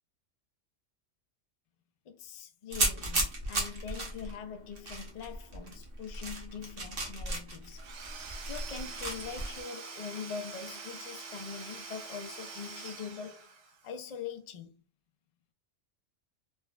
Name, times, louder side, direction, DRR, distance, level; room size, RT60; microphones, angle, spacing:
voice 1, 2.1-7.8 8.1-13.5 13.8-14.7, left 6 dB, 75° left, 0.3 m, -43 dB
sound 1, 2.7-9.6, right 2 dB, 55° right, 1.0 m, -35 dB
Domestic sounds home sounds / Tools, 7.8-13.9, right 5 dB, 75° right, 1.0 m, -45 dB
3.4 x 2.1 x 2.3 m
omnidirectional pair, 1.3 m